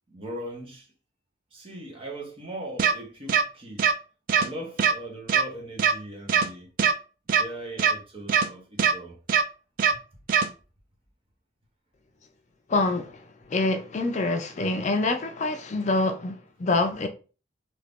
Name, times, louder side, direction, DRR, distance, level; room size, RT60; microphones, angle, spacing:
voice 1, 0.1-0.9 1.5-3.9 4.3-6.7 7.4-9.2 9.9-10.0, right 1 dB, 30° right, 0.9 m, -39 dB
sound 1, 2.8-2.9 3.3-3.4 3.8-3.9 4.3-4.5 4.8-4.9 5.3-5.4 5.8-5.9 6.3-6.5 6.8-6.9 7.3-7.4 7.8-7.9 8.3-8.5 8.8-8.9 9.3-9.4 9.8-9.9 10.3-10.5, right 7 dB, 50° right, 0.3 m, -20 dB
voice 2, 12.7-13.2 13.5-17.1, left 2 dB, 40° left, 0.4 m, -26 dB
2.8 x 2.5 x 3.4 m
head